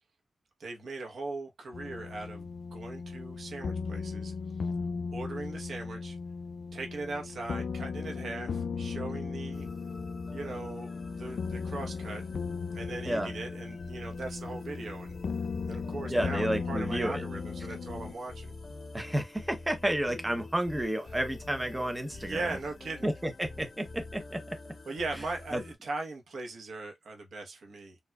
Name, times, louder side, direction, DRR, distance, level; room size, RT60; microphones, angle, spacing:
voice 1, 0.6-4.3 5.1-6.2 6.7-9.7 10.3-12.2 12.7-15.1 15.7-18.5 22.1-23.1 24.9-28.0, right 3 dB, 70° right, 1.1 m, -39 dB
sound 1, 1.7-18.1, left 5 dB, 65° left, 0.4 m, -37 dB
sound 2, 9.5-25.7, left 3 dB, 50° left, 0.8 m, -47 dB
voice 2, 16.1-17.2 18.9-22.6 23.0-24.6 25.5-25.6, right 1 dB, 10° right, 0.8 m, -31 dB
4.5 x 2.4 x 2.3 m
wide cardioid pair, 110°, 0 cm